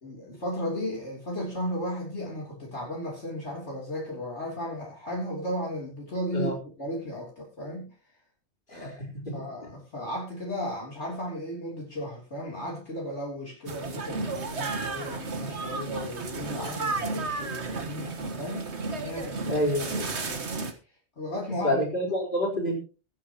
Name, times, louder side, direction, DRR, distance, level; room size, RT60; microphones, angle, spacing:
voice 1, 0.0-6.5 6.8-7.9 8.7-9.0 9.3-18.7 19.0-19.6 20.2-20.4 21.2-21.8, equal, 65° left, -3 dB, 3.7 m, -35 dB
voice 2, 8.7-9.4 19.5-20.1 21.6-22.8, equal, 45° left, -3 dB, 4.5 m, -28 dB
sound 1, 13.7-20.7, right 3 dB, 70° right, 1.8 m, -33 dB
22.5 x 8.5 x 3.0 m, 0.35 s
omnidirectional pair, 1.2 m